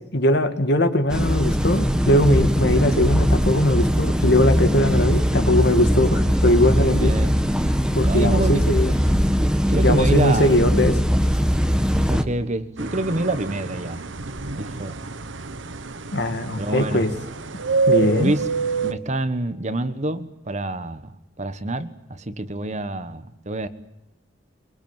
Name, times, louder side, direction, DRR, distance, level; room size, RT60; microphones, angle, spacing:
voice 1, 0.1-7.2 7.9-9.0 9.8-11.0 16.1-17.1 17.9-18.3, left 1 dB, 60° left, 8 dB, 2.3 m, -20 dB
sound 1, 1.1-12.2, equal, 5° right, 1.4 m, -20 dB
voice 2, 6.8-7.3 8.0-8.6 9.7-10.6 12.1-14.0 14.6-15.0 16.6-17.0 18.2-18.5 18.8-21.1 21.4-23.7, right 2 dB, 40° right, 12 dB, 1.3 m, -26 dB
sound 2, 12.8-18.9, right 4 dB, 75° right, 1.2 m, -27 dB
23.5 x 23.0 x 9.0 m, 0.91 s
head